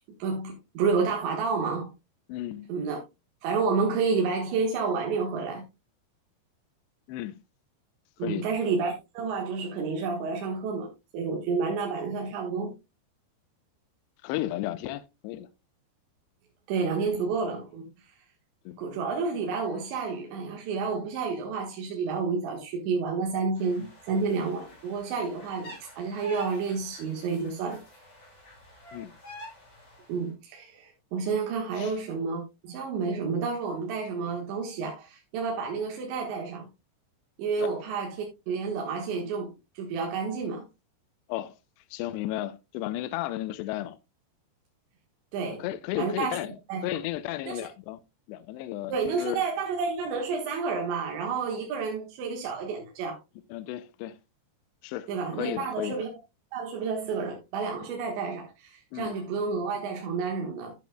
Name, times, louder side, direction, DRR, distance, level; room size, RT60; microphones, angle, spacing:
voice 1, 0.2-1.9 2.7-3.0 3.4-5.6 8.2-12.7 16.7-17.8 18.8-27.8 30.1-36.7 37.4-40.7 45.3-45.6 46.0-46.4 46.7-46.8 47.5-47.6 48.9-53.2 55.1-56.1 56.5-60.8, right 5 dB, 80° right, 3.8 m, -30 dB
voice 2, 2.3-2.7 7.1-7.4 8.2-8.5 14.2-15.5 17.1-17.2 18.7-18.8 28.9-29.1 31.8-32.0 37.6-37.8 41.3-41.6 41.9-44.0 45.5-46.5 46.8-48.0 48.3-49.4 53.5-54.2 54.8-56.0 58.9-59.2, left 14 dB, 80° left, 2.6 m, -34 dB
sound 1, 23.6-30.2, right 1 dB, 35° left, 7.5 m, -47 dB
12.5 x 8.6 x 2.3 m
omnidirectional pair, 5.1 m